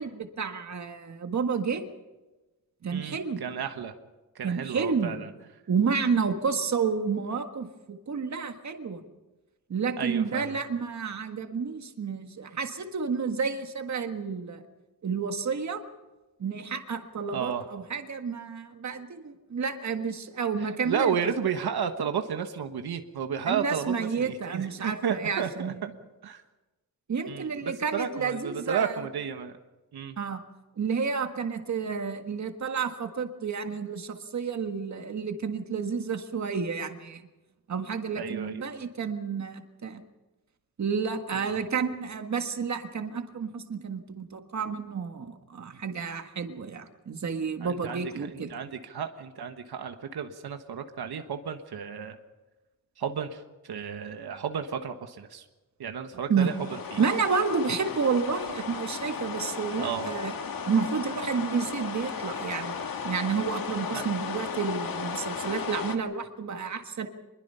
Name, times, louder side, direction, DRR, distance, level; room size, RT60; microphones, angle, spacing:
voice 1, 0.0-1.8 2.8-3.4 4.4-5.2 5.7-9.0 9.7-14.6 15.0-15.8 16.4-21.2 23.5-25.8 27.1-29.0 30.2-30.4 30.8-37.2 37.7-40.0 40.8-48.5 56.3-56.5 57.0-60.3 60.7-67.1, right 5 dB, 50° right, 6 dB, 1.6 m, -30 dB
voice 2, 2.9-3.9 4.3-5.3 10.0-10.6 17.3-17.6 20.6-25.9 26.2-26.4 27.3-29.5 29.9-30.2 38.2-38.7 41.3-41.6 47.6-48.0 48.3-52.2 53.0-55.4 55.8-57.0 59.8-60.2 63.9-64.1, right 7 dB, 80° right, 6 dB, 1.4 m, -33 dB
sound 1, 56.4-66.0, left 6 dB, 65° left, 1.8 m, -35 dB
24.5 x 21.5 x 5.6 m, 1.1 s
wide cardioid pair, 150°, 37 cm